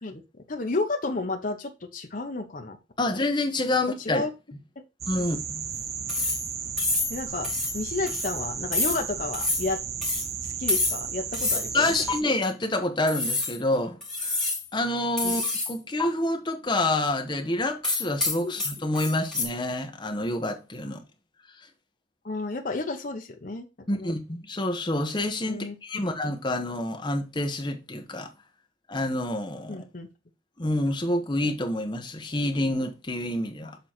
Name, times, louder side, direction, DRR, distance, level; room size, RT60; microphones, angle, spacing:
voice 1, 0.5-2.8 4.0-4.3 7.1-9.8 10.4-11.9 15.2-15.4 18.4-18.5 22.2-23.7 23.9-24.1 25.5-26.1 29.7-30.1, left 3 dB, 45° left, 0.9 m, -32 dB
voice 2, 3.0-4.2 5.1-5.6 11.7-14.4 14.7-21.0 23.9-28.3 28.9-29.8 30.6-33.8, left 1 dB, 25° left, 1.0 m, -28 dB
sound 1, 5.0-12.2, right 6 dB, 35° right, 0.6 m, -34 dB
sound 2, 6.1-6.5 6.8-7.2 7.4-7.8 8.1-8.3 8.7-9.0 9.3-9.7 10.0-10.3 10.7-11.0 11.3-11.7 12.1-12.2 13.1-13.6 14.0-14.7 15.2-15.7 16.0-16.1 17.8-19.5, left 2 dB, 5° left, 2.4 m, -27 dB
6.9 x 3.9 x 4.4 m
head